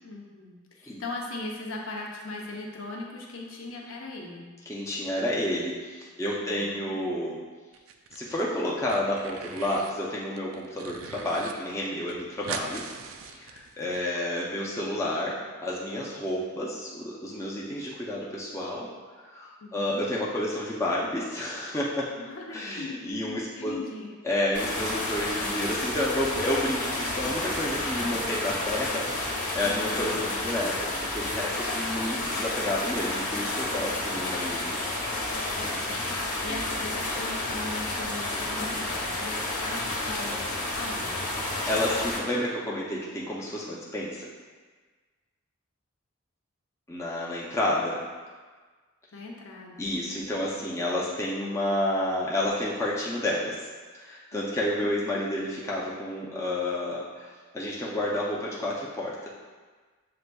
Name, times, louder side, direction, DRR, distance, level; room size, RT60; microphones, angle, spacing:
voice 1, 0.0-4.5 6.4-7.0 19.6-20.0 22.2-24.1 29.7-30.2 35.5-41.3 47.8-47.9 49.1-50.5 54.3-54.9, left 2 dB, 60° left, -1 dB, 0.7 m, -39 dB
voice 2, 4.7-7.4 8.1-12.8 13.3-18.9 19.2-22.1 22.5-23.8 24.2-34.8 36.5-36.6 41.7-44.3 46.9-48.0 49.8-53.7 53.9-59.3, left 1 dB, 10° left, -6 dB, 0.4 m, -30 dB
sound 1, 7.7-8.4 8.7-10.0 10.3-11.5 11.8-11.9 12.1-14.0, right 6 dB, 60° right, 0.3 m, -40 dB
sound 2, 24.5-42.2, left 2 dB, 85° left, 1.3 m, -31 dB
7.6 x 2.6 x 2.2 m, 1.4 s
head